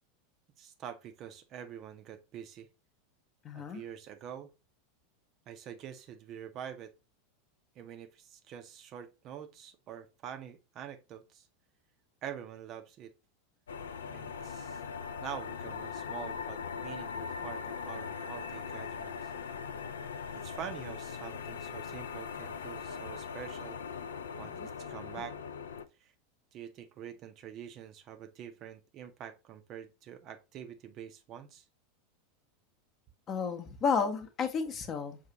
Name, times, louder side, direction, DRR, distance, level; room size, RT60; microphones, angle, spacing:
voice 1, 0.6-2.7 3.5-4.5 5.5-6.9 7.8-11.5 12.2-13.1 14.1-14.8 15.2-19.3 20.3-23.8 24.3-25.4 26.0-26.1 26.5-31.6, right 9 dB, 35° right, 0.5 m, -46 dB
voice 2, 3.4-3.8 24.4-24.7 33.3-35.2, left 5 dB, 30° left, 0.7 m, -32 dB
sound 1, 13.7-25.9, left 6 dB, 70° left, 0.3 m, -40 dB
5.4 x 2.4 x 2.8 m
figure-of-eight pair, 85°, 0 cm